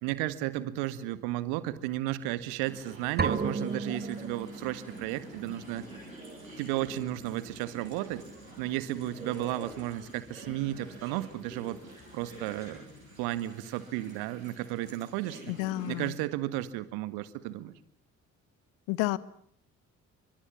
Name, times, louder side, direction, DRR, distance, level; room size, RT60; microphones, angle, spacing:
voice 1, 0.0-5.9 6.6-8.2 8.6-11.8 12.1-12.8 13.2-15.4 15.9-17.7, right 15 dB, 65° right, 14 dB, 1.8 m, -33 dB
sound 1, 1.3-13.5, left 4 dB, 35° left, 5.1 m, -58 dB
sound 2, 2.6-16.1, right 1 dB, 85° right, 7.3 m, -47 dB
sound 3, 3.2-5.0, right 5 dB, 25° right, 1.7 m, -32 dB
voice 2, 15.5-16.1 18.9-19.2, left 19 dB, 65° left, 20 dB, 1.2 m, -30 dB
29.5 x 25.0 x 7.2 m, 0.63 s
figure-of-eight pair, 45°, 40 cm